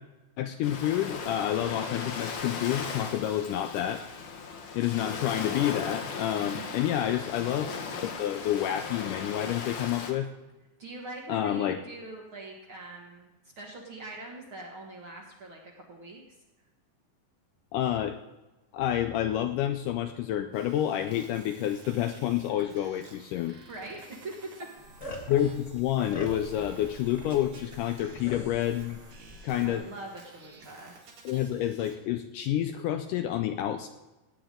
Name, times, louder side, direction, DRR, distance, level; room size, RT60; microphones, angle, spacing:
voice 1, 0.4-4.0 4.7-7.7 8.0-10.3 11.3-11.8 17.7-18.2 18.7-23.6 25.3-29.0 29.4-29.8 31.3-33.9, left 11 dB, 80° left, 7 dB, 1.9 m, -29 dB
Ocean, 0.6-10.1, left 5 dB, 65° left, 2.4 m, -37 dB
voice 2, 6.4-6.9 10.8-13.3 13.6-16.4 23.7-24.7 25.0-25.3 29.6-31.0, right 2 dB, 50° right, -1 dB, 1.7 m, -43 dB
sound 1, 20.5-32.0, right 3 dB, 70° right, 4.0 m, -53 dB
sound 2, 24.8-29.8, equal, 45° left, 0.9 m, -44 dB
18.0 x 8.9 x 3.8 m, 1.1 s
omnidirectional pair, 4.1 m